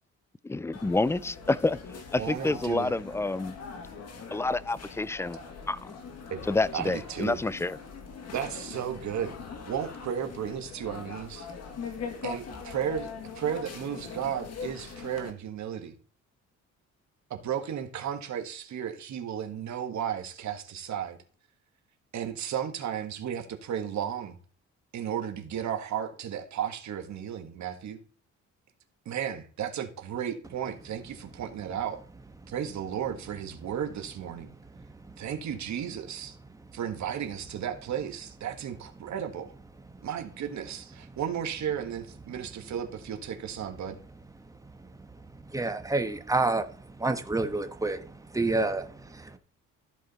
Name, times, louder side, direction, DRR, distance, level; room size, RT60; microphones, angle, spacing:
voice 1, 0.4-1.8 2.1-3.6 4.3-5.4 5.7-6.0 6.5-7.8, left 2 dB, 10° left, 0.3 m, -28 dB
Marrakesh Street Ambience, 0.7-15.3, left 5 dB, 55° left, 1.8 m, -42 dB
voice 2, 2.2-2.9 6.3-6.4 6.7-7.4 8.3-9.3 9.7-11.5 12.2-16.0 17.3-21.2 22.1-24.4 24.9-28.0 29.0-32.0 32.5-34.5 35.2-36.4 36.7-39.5 40.0-44.0, right 9 dB, 65° right, 1.6 m, -34 dB
voice 3, 45.5-49.4, right 2 dB, 10° right, 1.2 m, -29 dB
14.0 x 5.0 x 4.1 m
cardioid pair, 90°, 30 cm